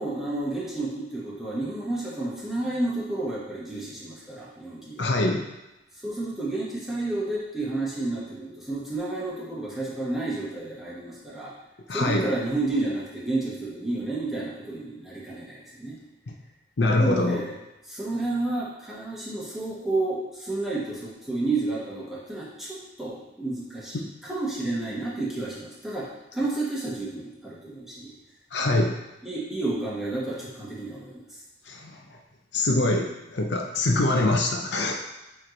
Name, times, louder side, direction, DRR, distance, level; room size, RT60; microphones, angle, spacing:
voice 1, 0.0-5.1 6.0-11.5 11.9-16.0 16.9-17.5 17.9-28.1 28.6-28.9 29.2-31.2, right 2 dB, ahead, -7 dB, 1.3 m, -31 dB
voice 2, 5.0-5.4 11.9-12.3 16.3-16.4 16.8-17.4 23.9-24.1 28.5-28.9 31.7-32.0 32.5-34.9, left 2 dB, 60° left, 3 dB, 0.6 m, -24 dB
7.5 x 3.2 x 3.9 m, 0.97 s
head